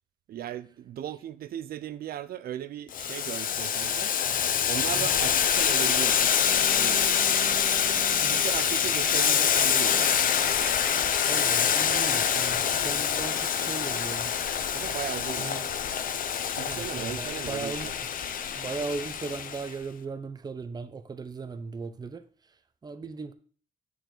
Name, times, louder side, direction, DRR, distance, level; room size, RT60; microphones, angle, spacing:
voice 1, 0.3-4.1 4.7-6.4 6.7-7.1 8.1-10.3 14.7-15.7 16.6-17.9, right 11 dB, 80° right, 0.4 m, -37 dB
Boiling, 2.9-19.7, left 8 dB, 65° left, 0.6 m, -26 dB
Bowed string instrument, 6.4-11.2, right 8 dB, 65° right, 0.8 m, -44 dB
voice 2, 11.3-14.3 15.4-15.7 16.7-18.0 18.5-22.2 22.8-23.3, right 4 dB, 25° right, 0.6 m, -37 dB
9.1 x 4.6 x 3.8 m
wide cardioid pair, 155°, 15 cm